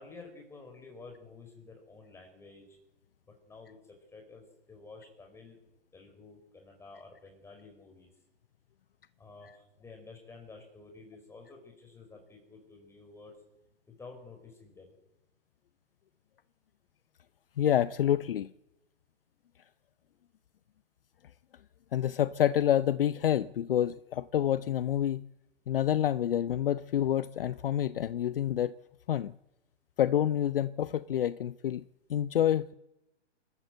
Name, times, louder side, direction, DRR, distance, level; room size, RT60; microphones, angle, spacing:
voice 1, 0.0-2.7 3.3-5.6 5.9-8.1 9.2-13.3 13.9-14.9, left 3 dB, 10° left, 4.9 m, -51 dB
voice 2, 17.6-18.5 21.9-25.2 25.7-28.7 29.1-29.3 30.0-31.8 32.1-32.7, left 10 dB, 55° left, 0.6 m, -28 dB
27.5 x 13.0 x 7.7 m
figure-of-eight pair, 130°, 34 cm